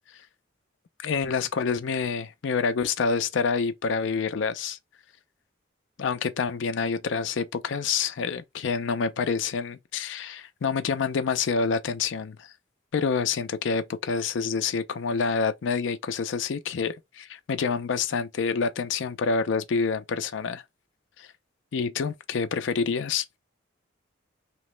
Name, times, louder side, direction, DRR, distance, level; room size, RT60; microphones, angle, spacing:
voice 1, 1.0-4.8 6.0-12.5 12.9-20.6 21.2-21.3 21.7-23.2, left 5 dB, 70° left, 0.4 m, -27 dB
2.9 x 2.1 x 3.0 m
head